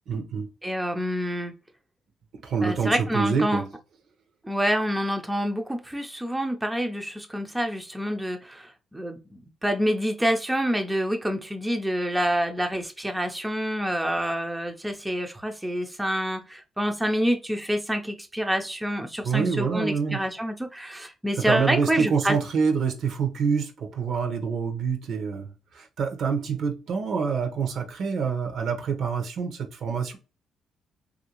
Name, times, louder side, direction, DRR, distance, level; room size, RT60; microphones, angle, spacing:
voice 1, 0.1-0.5 2.4-3.7 19.2-20.2 21.4-30.2, right 5 dB, 70° right, 0.8 m, -26 dB
voice 2, 0.6-1.5 2.6-3.6 4.4-22.4, equal, 10° right, 0.5 m, -27 dB
3.2 x 2.6 x 2.9 m
cardioid pair, 90°, 0 cm